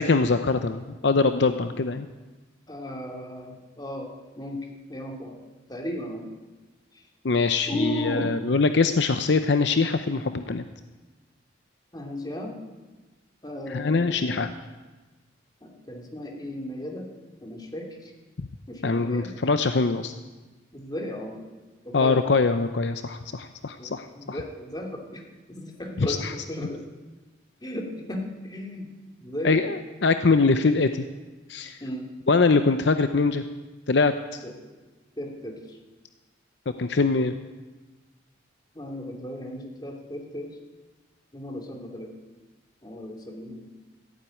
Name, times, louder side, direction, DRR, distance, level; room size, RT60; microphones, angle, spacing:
voice 1, 0.0-2.1 7.2-10.6 13.7-14.5 18.8-20.1 21.9-24.4 26.0-26.3 29.4-31.1 31.5-31.8 32.3-33.4 33.9-34.4 36.7-37.3, left 4 dB, 65° left, 9 dB, 0.7 m, -23 dB
voice 2, 2.7-5.4 5.7-6.2 7.7-8.4 11.9-12.5 13.4-14.5 15.6-17.1 17.4-18.1 18.7-19.5 20.7-21.5 21.8-22.3 23.8-25.2 25.5-26.8 27.6-28.9 29.2-29.7 31.8-32.1 34.4-34.7 35.2-35.8 38.7-40.5 41.3-42.1 42.8-43.6, left 1 dB, 20° left, 1 dB, 2.6 m, -35 dB
14.5 x 9.4 x 9.0 m, 1.2 s
head